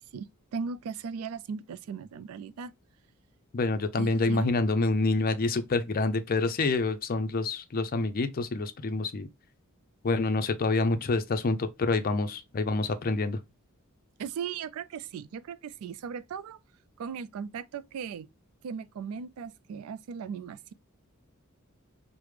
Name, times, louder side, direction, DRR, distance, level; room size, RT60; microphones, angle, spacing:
voice 1, 0.1-2.7 4.0-4.5 14.2-16.6 17.0-18.3 18.6-20.7, right 6 dB, 80° right, 0.3 m, -38 dB
voice 2, 3.5-9.3 10.0-13.4, left 3 dB, 40° left, 0.4 m, -27 dB
4.8 x 2.0 x 3.2 m
head